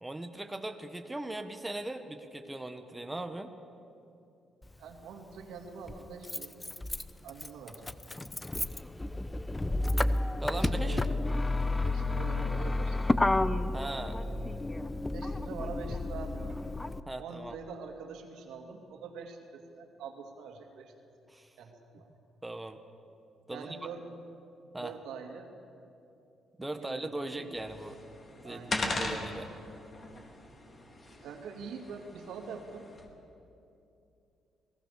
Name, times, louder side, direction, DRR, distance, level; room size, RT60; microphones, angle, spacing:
voice 1, 0.0-3.5 10.4-11.0 13.7-14.2 17.1-17.5 21.3-21.5 22.4-22.8 23.5-23.7 24.7-24.9 26.6-28.0 28.4-29.5, right 1 dB, 10° right, 6 dB, 1.4 m, -39 dB
Motor vehicle (road), 4.6-4.7 5.9-17.0, left 2 dB, 15° left, 0.8 m, -31 dB
voice 2, 4.8-6.7 7.2-7.9 10.5-11.2 11.8-13.0 15.1-16.7 17.2-20.9 21.6-22.1 23.5-24.0 24.8-25.5 26.6-27.5 28.4-28.8 31.2-32.9, right 5 dB, 85° right, 3 dB, 2.8 m, -44 dB
sound 1, 27.5-33.0, left 2 dB, 35° left, 3.7 m, -39 dB
27.5 x 18.5 x 7.0 m, 2.7 s
cardioid pair, 90°, 0 cm